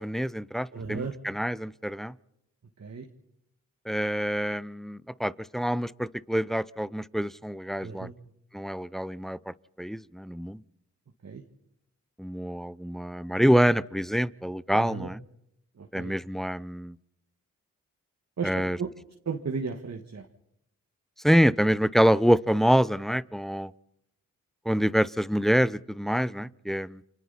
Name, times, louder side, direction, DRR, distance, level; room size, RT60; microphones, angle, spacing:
voice 1, 0.0-2.1 3.9-8.1 8.5-9.4 9.8-10.6 12.2-15.2 15.9-16.9 18.4-18.8 21.2-23.7 24.7-27.0, equal, ahead, 18 dB, 0.7 m, -26 dB
voice 2, 0.7-1.1 2.8-3.1 7.8-8.1 11.2-11.4 14.7-15.1 15.8-16.1 18.4-18.9 19.3-20.3, right 5 dB, 55° right, 3 dB, 1.9 m, -35 dB
29.5 x 24.5 x 4.2 m, 0.80 s
supercardioid pair, 40°, 33 cm